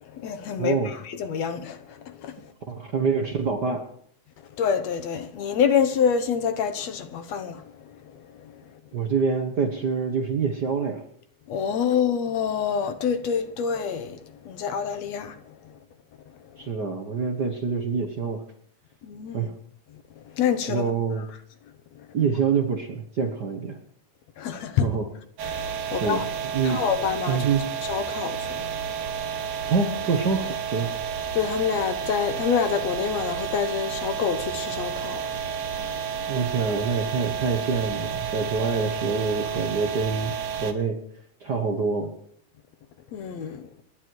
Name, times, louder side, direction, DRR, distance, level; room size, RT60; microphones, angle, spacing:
voice 1, 0.1-2.5 4.6-8.5 11.5-15.7 19.0-19.5 20.3-20.8 22.0-22.1 24.4-24.9 25.4-26.3 26.6-27.4 27.9-29.5 31.3-35.9 43.1-43.7, left 7 dB, 65° left, 2.1 m, -27 dB
voice 2, 0.6-0.9 2.7-3.8 8.9-11.0 16.6-18.4 19.3-19.5 20.7-21.3 22.1-23.8 24.8-25.1 25.9-26.2 26.5-26.8 27.3-27.6 29.7-30.9 36.3-40.3 40.6-41.0 41.4-42.1, right 5 dB, 45° right, 1.4 m, -26 dB
sound 1, 25.4-40.7, right 7 dB, 85° right, 3.0 m, -31 dB
28.0 x 11.0 x 4.7 m
omnidirectional pair, 3.4 m